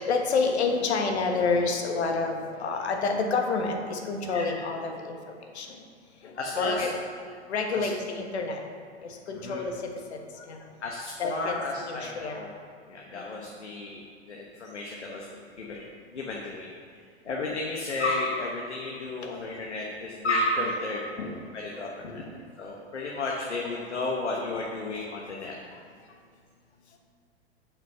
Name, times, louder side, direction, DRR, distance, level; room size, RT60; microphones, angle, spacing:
voice 1, 0.0-5.2 5.5-5.7 6.2-7.0 7.5-8.6 9.3-9.7 10.1-10.2 10.4-10.6 11.2-11.6 11.9-12.4 13.1-13.3 21.2-21.4 22.1-22.3, left 4 dB, 75° left, 3 dB, 1.5 m, -28 dB
voice 2, 6.4-6.9 7.7-7.9 9.3-9.6 10.8-12.5 12.9-16.7 17.2-21.0 21.5-22.2 22.6-25.5, left 2 dB, 90° left, -2 dB, 1.2 m, -32 dB
7.2 x 5.9 x 6.7 m, 2.3 s
hypercardioid pair, 105°, 33 cm